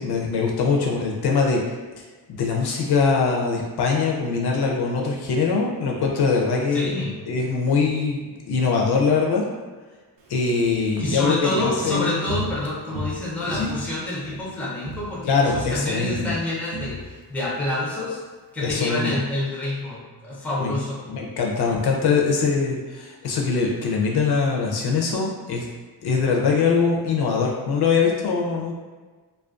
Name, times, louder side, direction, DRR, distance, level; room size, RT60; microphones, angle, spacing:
voice 1, 0.0-1.6 2.3-6.9 7.3-9.4 10.3-12.2 13.4-13.7 15.2-16.3 18.6-19.2 20.6-20.7 21.1-25.7 26.0-28.8, left 5 dB, 65° left, -1 dB, 0.5 m, -22 dB
voice 2, 6.7-7.2 11.0-18.2 18.5-21.0, left 2 dB, 5° left, -5 dB, 0.4 m, -27 dB
Walk footsteps, 10.2-14.5 14.8-15.2 15.4-17.8 18.1-18.2, equal, 80° right, 0.5 m, -35 dB
2.3 x 2.2 x 2.4 m, 1.4 s
wide cardioid pair, 140°, 42 cm